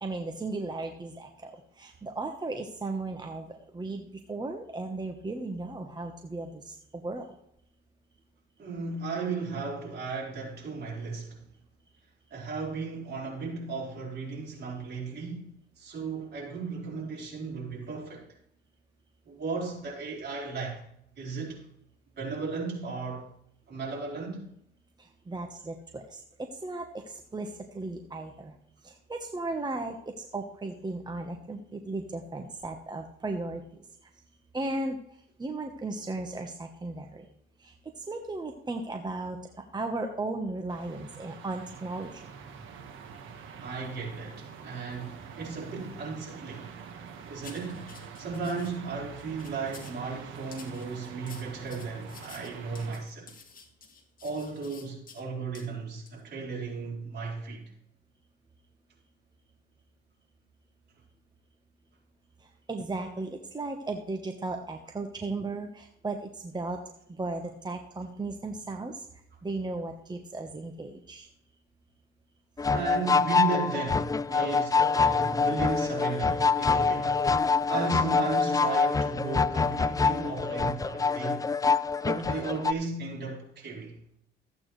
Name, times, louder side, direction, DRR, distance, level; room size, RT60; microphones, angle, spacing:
voice 1, 0.0-7.4 25.0-28.6 28.8-33.6 34.5-35.0 35.4-37.3 37.6-42.2 62.7-66.8 67.1-69.0 69.4-71.3, right 2 dB, 20° right, 1.1 m, -36 dB
voice 2, 8.6-11.4 12.3-18.3 19.3-20.8 21.2-21.6 22.2-23.3 23.7-24.5 43.6-46.8 47.3-53.3 54.2-57.7 72.7-77.2 77.7-81.5 82.0-84.0, right 4 dB, 55° right, 4.3 m, -35 dB
sound 1, 40.7-53.0, right 6 dB, 85° right, 1.5 m, -45 dB
sound 2, 47.4-48.7 49.2-50.0 50.5-55.2 55.5-55.7 56.1-56.2, left 5 dB, 45° left, 2.3 m, -51 dB
sound 3, 72.6-82.7, left 4 dB, 20° left, 0.3 m, -25 dB
14.0 x 8.6 x 3.2 m
cardioid pair, 90°, 20 cm